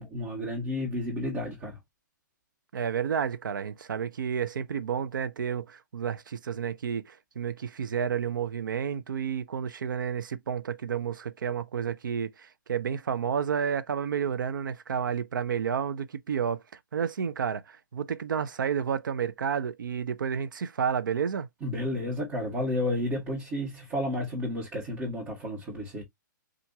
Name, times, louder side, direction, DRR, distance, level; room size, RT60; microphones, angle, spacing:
voice 1, 0.0-1.8 21.6-26.0, left 1 dB, 20° right, 1.7 m, -31 dB
voice 2, 2.7-16.6 16.9-21.5, right 7 dB, 75° right, 0.6 m, -31 dB
5.7 x 2.5 x 2.8 m
hypercardioid pair, 155°, 11 cm